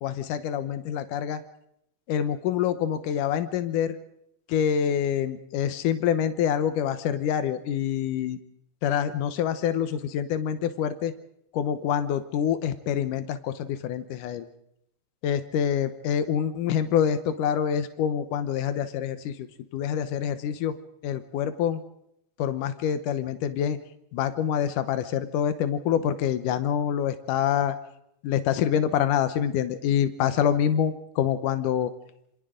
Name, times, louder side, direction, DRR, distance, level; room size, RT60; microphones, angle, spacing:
voice 1, 0.0-1.4 2.1-4.0 4.5-8.4 8.8-11.1 11.5-14.5 15.2-19.5 19.7-20.7 21.0-21.8 22.4-23.8 24.1-27.8 28.2-31.9, left 9 dB, 85° left, 11 dB, 1.8 m, -26 dB
27.5 x 26.5 x 3.8 m, 0.75 s
omnidirectional pair, 5.2 m